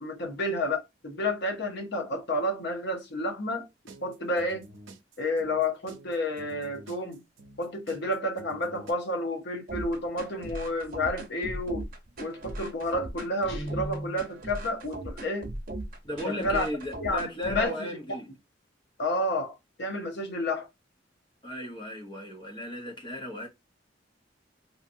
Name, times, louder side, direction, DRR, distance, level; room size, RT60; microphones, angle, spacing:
voice 1, 0.0-3.7 4.0-4.6 5.2-7.2 7.6-11.8 12.2-15.5 16.2-16.7 17.0-17.9 19.0-20.7, left 1 dB, 60° left, 0.9 m, -30 dB
sound 1, 3.9-8.9, right 1 dB, 90° right, 0.7 m, -49 dB
sound 2, 9.7-17.7, right 1 dB, 50° right, 0.8 m, -38 dB
Guitar, 13.5-14.3, equal, 85° left, 1.3 m, -36 dB
voice 2, 16.0-18.3 21.4-23.5, equal, 25° left, 0.9 m, -35 dB
3.0 x 2.8 x 2.6 m
head